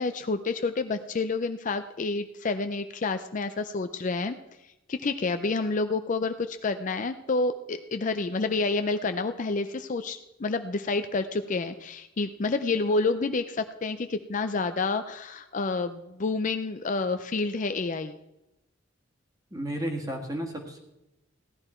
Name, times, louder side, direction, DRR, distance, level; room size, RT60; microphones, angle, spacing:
voice 1, 0.0-4.4 4.9-18.2, left 3 dB, 40° left, 9 dB, 0.5 m, -29 dB
voice 2, 19.5-20.8, right 1 dB, 20° right, 2 dB, 1.8 m, -33 dB
16.5 x 11.0 x 4.4 m, 0.94 s
head